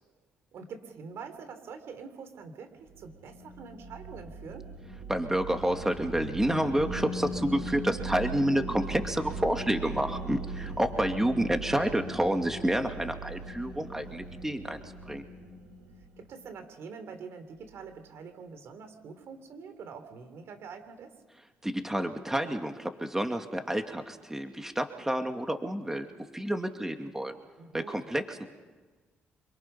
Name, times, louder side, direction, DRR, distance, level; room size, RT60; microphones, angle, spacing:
voice 1, 0.5-4.7 11.5-11.8 16.0-21.2 27.6-28.1, right 5 dB, 70° right, 8 dB, 3.2 m, -45 dB
sound 1, 2.9-16.4, right 2 dB, 90° right, 6.2 m, -39 dB
voice 2, 5.1-14.8 15.1-15.2 21.6-26.1 26.3-27.3 27.7-28.4, right 1 dB, 10° right, 5 dB, 2.3 m, -29 dB
26.5 x 24.0 x 5.7 m, 1.4 s
supercardioid pair, 60°, 5 cm